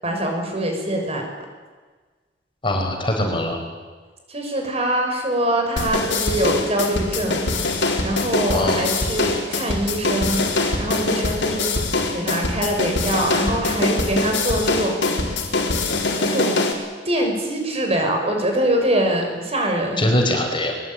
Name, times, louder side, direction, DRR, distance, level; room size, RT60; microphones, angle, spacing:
voice 1, 0.0-1.5 4.3-7.4 8.0-11.7 12.1-14.9 16.2-16.6 17.0-20.0, right 1 dB, 35° right, 2 dB, 6.1 m, -23 dB
voice 2, 2.6-3.6 8.5-8.9 20.0-20.7, left 1 dB, 30° left, 2 dB, 4.6 m, -22 dB
sound 1, 5.8-16.7, left 2 dB, 80° left, 4.1 m, -23 dB
22.5 x 21.5 x 9.0 m, 1.4 s
head